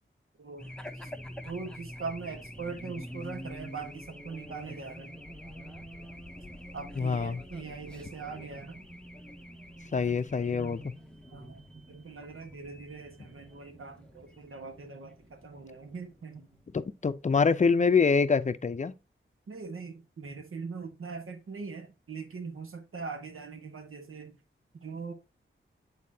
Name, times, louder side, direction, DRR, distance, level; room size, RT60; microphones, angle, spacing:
voice 1, 0.4-1.1 1.4-5.1 6.7-8.9 10.0-10.2 10.5-10.9 11.3-16.5 19.5-24.4 24.8-25.1, right 4 dB, 90° right, 1.4 m, -41 dB
Race car auto racing / Alarm, 0.6-17.5, equal, 5° left, 0.9 m, -47 dB
voice 2, 7.0-7.4 9.9-10.8 16.7-18.9, left 5 dB, 35° left, 0.5 m, -25 dB
8.6 x 4.2 x 2.8 m
wide cardioid pair, 110°, 21 cm